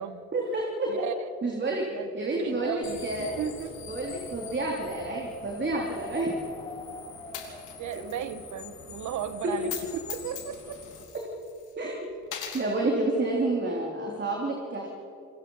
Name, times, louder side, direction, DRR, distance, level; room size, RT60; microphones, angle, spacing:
voice 1, 0.3-1.0 1.4-1.8 2.1-3.4 3.9-6.3 9.4-9.5 11.8-12.1 12.5-14.9, right 2 dB, 35° right, -1 dB, 3.4 m, -29 dB
voice 2, 0.9-1.3 1.7-3.8 7.8-10.8, right 8 dB, 75° right, 11 dB, 1.4 m, -36 dB
Wind, 2.2-8.3, left 1 dB, 10° left, 1.7 m, -44 dB
sound 1, 2.8-11.0, left 5 dB, 65° left, 4.1 m, -46 dB
Coin (dropping), 7.3-8.2 8.5-8.6 9.6-9.8 10.1-11.7 12.2-12.7, left 9 dB, 90° left, 3.1 m, -39 dB
28.0 x 20.5 x 5.6 m, 2.6 s
cardioid pair, 90°, 30 cm